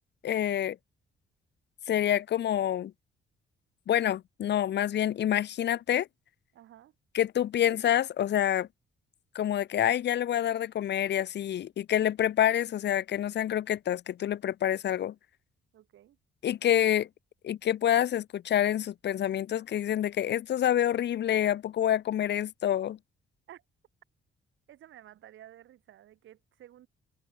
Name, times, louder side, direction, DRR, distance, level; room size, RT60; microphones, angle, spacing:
voice 1, 0.2-0.8 1.9-2.9 3.9-6.1 7.1-8.7 9.3-15.1 16.4-17.1 17.4-23.0, left 11 dB, 60° left, 0.9 m, -27 dB
voice 2, 6.5-6.9 15.7-16.2 23.5-23.6 24.7-26.9, right 12 dB, 75° right, 4.9 m, -53 dB
cardioid pair, 90°, 20 cm